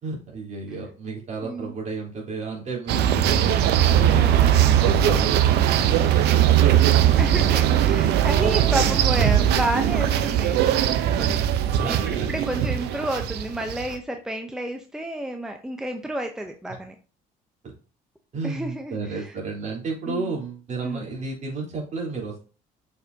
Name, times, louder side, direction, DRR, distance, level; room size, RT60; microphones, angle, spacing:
voice 1, 0.0-3.6 3.9-5.3 5.7-7.2 8.4-9.2 11.7-12.7 16.7-16.8 17.6-17.7 18.3-22.4, right 4 dB, 45° right, -2 dB, 3.6 m, -33 dB
voice 2, 1.4-1.7 4.1-4.7 7.2-11.4 11.8-16.9 18.4-19.3 20.1-20.3 20.8-21.0, right 1 dB, 5° right, 4 dB, 0.7 m, -31 dB
sound 1, 2.9-14.0, right 10 dB, 80° right, 0.8 m, -20 dB
6.6 x 5.5 x 2.7 m, 0.37 s
cardioid pair, 110°, 17 cm